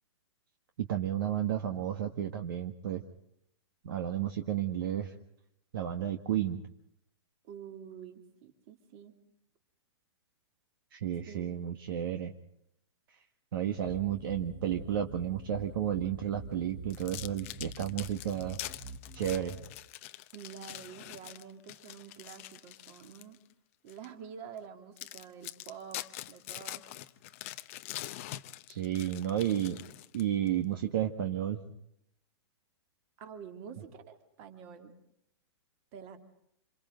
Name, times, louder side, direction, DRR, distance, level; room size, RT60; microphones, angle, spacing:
voice 1, 0.8-3.0 3.8-5.1 5.7-6.6 10.9-12.3 13.5-18.6 19.1-19.6 28.7-29.8 30.1-31.6, right 10 dB, 50° right, 6 dB, 1.7 m, -32 dB
voice 2, 7.4-9.2 11.3-11.6 20.3-23.4 23.8-26.9 33.2-34.9 35.9-36.2, right 7 dB, 25° right, 7 dB, 2.7 m, -48 dB
sound 1, 13.7-19.7, right 2 dB, 5° right, 1.4 m, -46 dB
sound 2, 16.9-23.4 23.9-24.1 24.6-24.7 25.0-30.5, left 15 dB, 30° left, 0.7 m, -44 dB
28.0 x 27.5 x 3.8 m, 0.74 s
hypercardioid pair, 175°, 15 cm